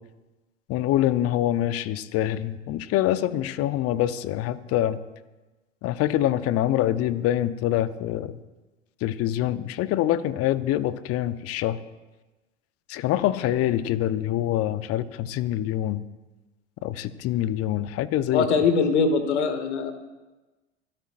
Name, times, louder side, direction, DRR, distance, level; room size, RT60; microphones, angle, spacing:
voice 1, 0.7-5.0 5.8-8.4 9.0-11.8 12.9-16.0 16.8-18.5, left 12 dB, 40° left, 14 dB, 0.8 m, -25 dB
voice 2, 18.3-19.9, left 5 dB, 70° left, 8 dB, 1.8 m, -22 dB
26.0 x 12.0 x 2.6 m, 1.1 s
figure-of-eight pair, 80°, 35 cm